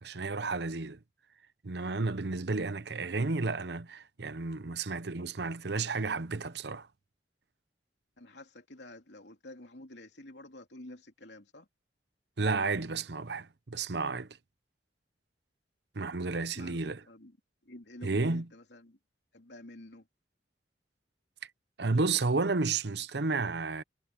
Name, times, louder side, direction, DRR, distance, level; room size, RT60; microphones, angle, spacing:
voice 1, 0.0-1.0 1.6-6.9 12.4-14.4 15.9-17.0 18.0-18.5 21.8-23.8, right 3 dB, 65° right, 0.9 m, -32 dB
voice 2, 8.2-11.7 16.4-17.3 17.6-19.0 19.3-20.0, left 1 dB, 70° left, 3.2 m, -49 dB
head